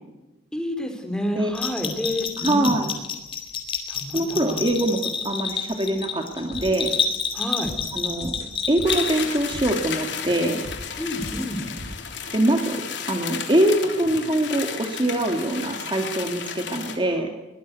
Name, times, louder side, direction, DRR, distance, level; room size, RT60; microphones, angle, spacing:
voice 1, 0.5-2.8 3.9-4.6 7.3-7.7 11.0-11.6, equal, 5° left, 5 dB, 3.9 m, -29 dB
Bell, 1.5-9.4, left 6 dB, 30° left, 3.8 m, -29 dB
voice 2, 2.4-2.9 4.1-6.9 7.9-8.3 8.7-10.6 12.3-12.8 13.1-17.3, right 1 dB, 25° right, 4 dB, 2.0 m, -23 dB
sound 1, 6.3-7.3 7.6-12.2, left 1 dB, 60° left, 3.7 m, -39 dB
sound 2, 8.8-17.0, left 6 dB, 75° left, 3.4 m, -33 dB
22.5 x 19.0 x 8.2 m, 1.1 s
head